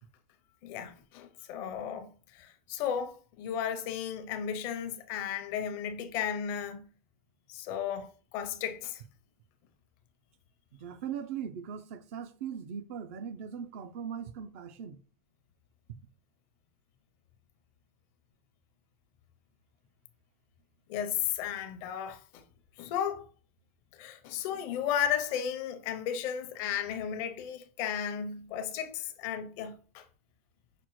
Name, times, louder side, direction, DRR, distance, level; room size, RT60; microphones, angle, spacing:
voice 1, 0.6-2.1 2.3-6.9 7.5-9.0 20.9-22.4 22.8-23.2 23.9-30.0, left 9 dB, 55° left, 0.6 m, -34 dB
voice 2, 10.7-15.0, right 8 dB, 70° right, 0.5 m, -39 dB
5.8 x 2.0 x 3.0 m
supercardioid pair, 115°, 8 cm